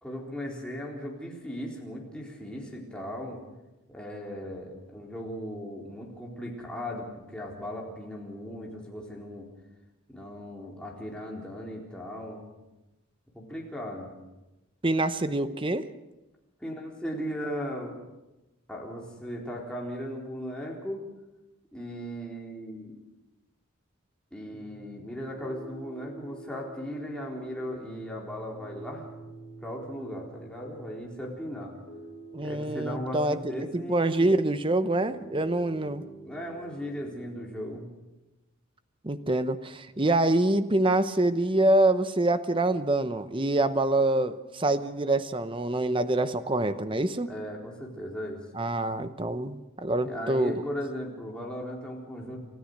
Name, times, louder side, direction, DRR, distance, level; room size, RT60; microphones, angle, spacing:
voice 1, 0.0-3.4 3.9-9.5 10.1-12.4 13.3-14.1 16.6-18.0 18.7-21.0 21.7-23.0 24.3-29.1 29.6-31.7 32.4-34.3 36.2-37.9 47.3-48.4 50.0-52.6, equal, 5° left, -2 dB, 4.0 m, -37 dB
voice 2, 14.8-15.9 32.3-36.0 39.0-47.3 48.5-50.5, right 2 dB, 25° right, 12 dB, 0.9 m, -26 dB
Piano, 24.5-37.6, right 3 dB, 75° left, 4.2 m, -48 dB
29.0 x 13.5 x 6.6 m, 1.0 s
head